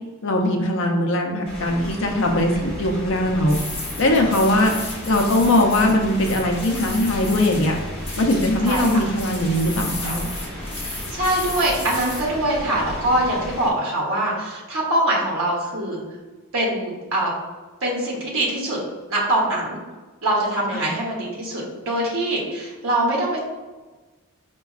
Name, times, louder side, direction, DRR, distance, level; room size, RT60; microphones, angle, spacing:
voice 1, 0.2-3.6 4.0-7.8 8.2-10.2 20.7-20.9, left 1 dB, 55° left, 2 dB, 0.5 m, -20 dB
sound 1, 1.4-13.7, equal, 30° right, 1.2 m, -34 dB
sound 2, 3.5-12.6, left 2 dB, 25° left, 0.9 m, -34 dB
voice 2, 8.6-9.0 10.8-16.0 16.5-17.3 17.8-18.8 19.1-19.8 20.2-23.4, right 1 dB, 60° right, -4 dB, 0.9 m, -23 dB
4.7 x 2.2 x 2.3 m, 1.2 s
head